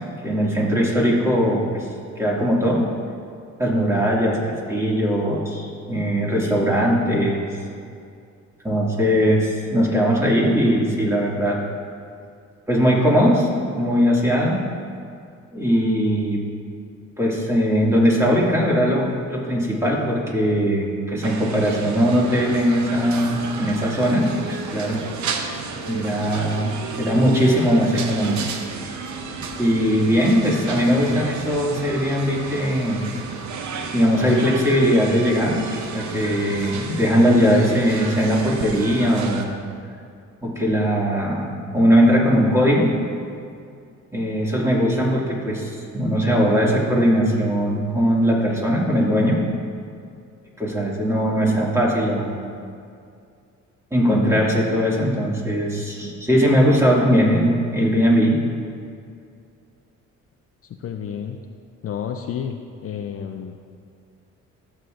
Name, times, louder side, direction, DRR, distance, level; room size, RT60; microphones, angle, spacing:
voice 1, 0.2-1.9 2.2-2.9 3.6-7.4 8.6-11.6 12.7-13.5 13.8-14.6 15.5-16.4 17.2-25.0 25.9-28.4 29.6-33.1 33.9-35.6 35.9-39.6 40.4-42.9 44.1-49.4 50.6-52.4 53.9-58.4, equal, 10° right, -4 dB, 2.1 m, -20 dB
sound 1, 21.2-39.4, right 5 dB, 70° right, 0.9 m, -33 dB
voice 2, 60.8-61.4 61.8-62.6 62.8-63.6, left 8 dB, 50° left, 5 dB, 0.5 m, -30 dB
14.0 x 7.6 x 2.5 m, 2.3 s
cardioid pair, 90°, 30 cm